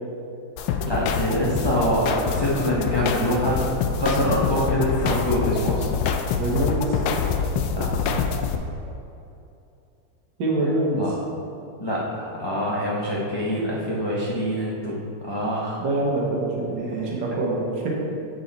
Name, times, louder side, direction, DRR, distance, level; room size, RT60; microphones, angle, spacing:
sound 1, 0.6-8.6, left 6 dB, 85° left, 1.3 m, -25 dB
voice 1, 0.7-3.7 4.0-5.9 7.7-8.3 10.9-11.1 11.8-15.8 16.9-17.1, equal, 25° left, -7 dB, 0.5 m, -25 dB
voice 2, 6.4-7.0 10.4-11.1 15.8-17.9, right 2 dB, 70° right, -3 dB, 1.8 m, -25 dB
8.0 x 5.5 x 4.1 m, 2.7 s
omnidirectional pair, 2.0 m